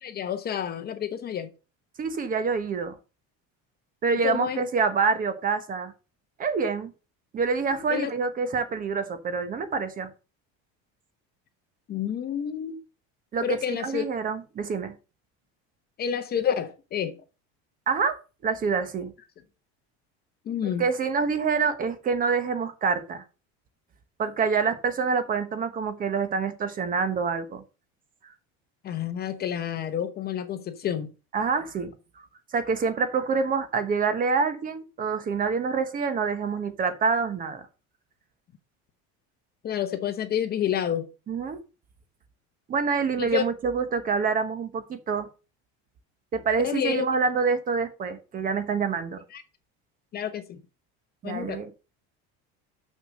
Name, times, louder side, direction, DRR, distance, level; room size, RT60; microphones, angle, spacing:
voice 1, 0.0-1.5 4.2-4.6 7.7-8.1 11.9-12.8 13.4-14.1 16.0-17.2 20.4-20.8 28.8-31.1 39.6-41.1 43.2-43.4 46.6-47.1 49.3-49.4 50.1-50.6 51.2-51.6, left 8 dB, 30° left, 0.9 m, -29 dB
voice 2, 2.0-2.9 4.0-5.9 6.4-6.9 7.3-10.1 13.3-14.9 17.9-18.2 18.4-19.1 20.8-23.2 24.2-27.6 31.3-31.9 32.5-37.6 41.3-41.6 42.7-45.3 46.3-49.2 51.2-51.7, right 5 dB, 25° right, 1.1 m, -26 dB
6.6 x 6.3 x 6.3 m
cardioid pair, 165°, 31 cm